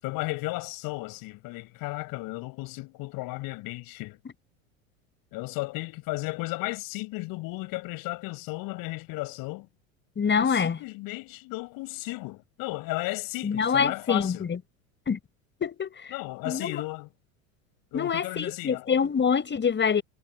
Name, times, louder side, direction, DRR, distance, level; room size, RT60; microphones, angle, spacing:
voice 1, 0.0-4.2 5.3-9.7 10.4-14.5 16.1-17.1 17.9-18.9, left 22 dB, 55° left, 7.0 m, -34 dB
voice 2, 10.2-10.8 13.4-14.6 15.1-15.2 15.6-15.9 16.4-16.8 17.9-20.0, left 6 dB, 25° left, 5.9 m, -25 dB
hypercardioid pair, 85°, 40 cm